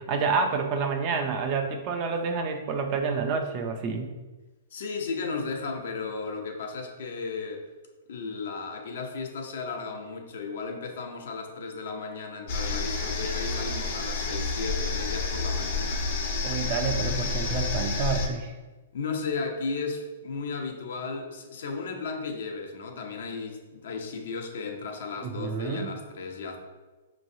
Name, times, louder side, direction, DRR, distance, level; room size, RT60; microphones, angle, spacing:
voice 1, 0.0-4.1 16.4-18.5 25.2-25.9, right 5 dB, 35° right, 5 dB, 0.5 m, -28 dB
voice 2, 4.7-7.6 8.1-16.0 18.9-26.6, left 4 dB, 70° left, 2 dB, 0.8 m, -35 dB
sound 1, 12.5-18.3, left 4 dB, 55° left, 1.1 m, -29 dB
5.2 x 3.1 x 2.7 m, 1.2 s
hypercardioid pair, 140°, 0 cm